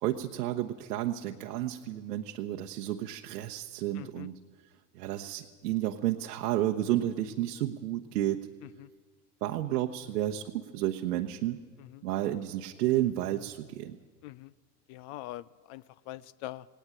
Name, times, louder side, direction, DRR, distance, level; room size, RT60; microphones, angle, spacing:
voice 1, 0.0-4.4 4.9-8.5 9.4-11.6 12.0-14.0, right 13 dB, 70° right, 3 dB, 1.1 m, -31 dB
voice 2, 3.9-4.3 8.8-8.9 11.8-12.0 14.2-14.5 14.9-16.7, left 16 dB, 45° left, 20 dB, 0.5 m, -43 dB
18.5 x 18.0 x 8.8 m, 1.5 s
hypercardioid pair, 85°, 49 cm